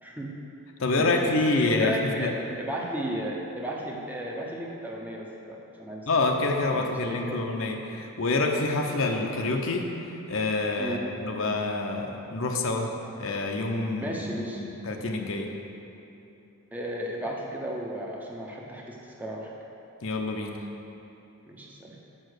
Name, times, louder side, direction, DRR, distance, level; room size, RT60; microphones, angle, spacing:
voice 1, 0.0-0.3 1.0-1.4 1.8-6.1 6.7-7.4 10.8-11.0 14.0-14.6 16.7-19.5 21.5-22.0, right 1 dB, 5° right, -2 dB, 0.7 m, -35 dB
voice 2, 0.8-2.3 6.1-9.8 10.3-12.9 13.2-15.5 20.0-20.6, left 2 dB, 60° left, 2 dB, 0.7 m, -27 dB
6.5 x 5.6 x 6.5 m, 2.9 s
head